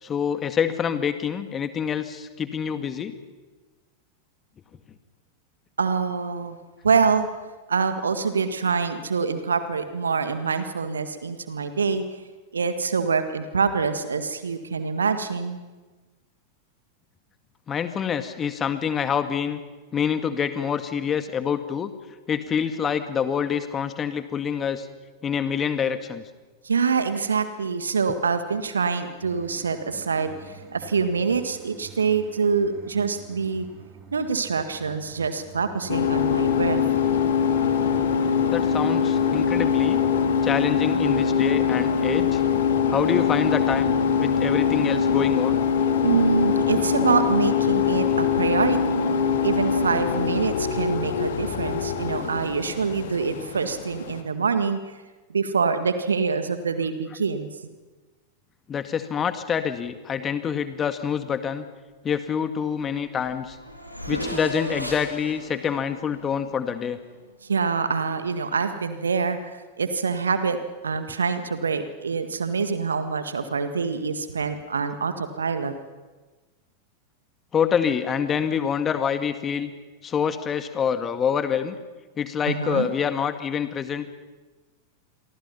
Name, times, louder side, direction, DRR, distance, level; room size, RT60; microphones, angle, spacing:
voice 1, 0.0-3.1 17.7-19.6 19.9-21.9 22.3-24.9 25.2-26.2 38.5-40.0 40.4-42.4 42.9-45.6 58.7-61.7 62.0-63.6 64.1-67.0 77.5-79.7 80.0-81.8 82.2-84.1, left 7 dB, 25° left, 9 dB, 1.9 m, -26 dB
voice 2, 5.8-6.6 6.8-7.3 7.7-12.2 12.5-15.6 26.6-33.7 34.1-36.8 46.0-49.0 49.4-54.8 55.3-57.5 67.4-69.4 69.8-70.6 70.8-75.7 82.5-82.9, right 5 dB, 70° right, 10 dB, 1.8 m, -25 dB
sound 1, 29.2-47.5, right 5 dB, 30° right, 5.5 m, -46 dB
sound 2, 35.9-54.2, left 7 dB, 60° left, 2.3 m, -23 dB
Race car auto racing / Accelerating revving vroom, 62.8-62.9 63.1-67.1, equal, 90° left, 3.4 m, -35 dB
28.0 x 24.0 x 5.7 m, 1.3 s
figure-of-eight pair, 90°, 0 cm